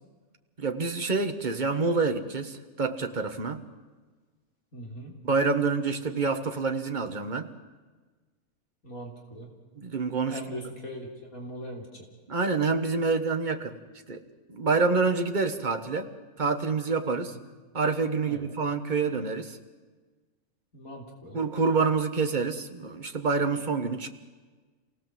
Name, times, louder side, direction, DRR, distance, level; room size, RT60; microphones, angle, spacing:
voice 1, 0.6-3.6 5.2-7.5 9.8-10.4 12.3-13.8 14.1-14.2 14.5-16.1 16.4-17.3 17.7-19.6 21.3-24.1, right 4 dB, 35° right, 6 dB, 1.5 m, -27 dB
voice 2, 4.7-5.1 8.8-9.5 10.3-11.9 18.3-18.5 20.7-21.4, equal, 70° left, 0 dB, 4.0 m, -40 dB
27.5 x 18.0 x 7.6 m, 1.3 s
omnidirectional pair, 1.5 m